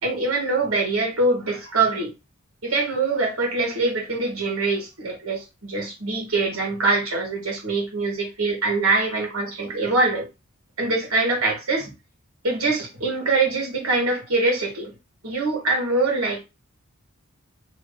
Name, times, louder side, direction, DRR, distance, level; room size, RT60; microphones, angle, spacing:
voice 1, 0.0-2.1 2.6-10.3 10.8-11.9 12.4-14.9 15.2-16.4, right 3 dB, 75° right, 1.6 m, -23 dB
3.0 x 2.7 x 3.9 m
head